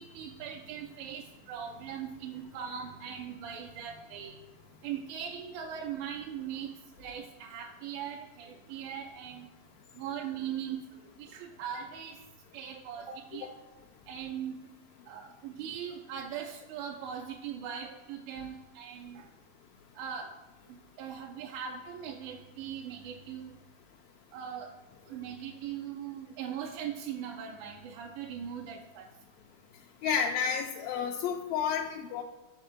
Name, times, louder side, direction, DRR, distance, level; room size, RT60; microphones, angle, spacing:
voice 1, 0.0-4.4 4.7-9.5 9.9-12.2 12.5-13.5 14.1-14.6 15.1-19.3 20.0-20.4 21.0-23.6 24.3-24.8 25.1-29.2, right 8 dB, 80° right, 1 dB, 1.9 m, -40 dB
voice 2, 30.0-32.2, left 7 dB, 80° left, 2 dB, 1.6 m, -31 dB
5.2 x 4.3 x 6.1 m, 1.2 s
omnidirectional pair, 3.5 m